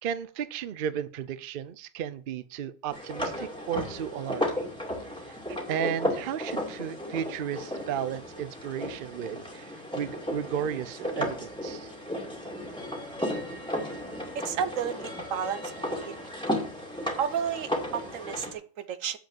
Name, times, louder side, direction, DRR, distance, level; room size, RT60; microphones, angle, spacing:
voice 1, 0.0-4.7 5.2-11.9, right 9 dB, 55° right, 0.7 m, -34 dB
sound 1, 2.9-18.5, left 1 dB, 5° left, 2.2 m, -34 dB
voice 2, 14.3-16.1 17.2-19.2, right 8 dB, 85° right, 1.2 m, -32 dB
7.8 x 5.8 x 7.2 m
omnidirectional pair, 1.3 m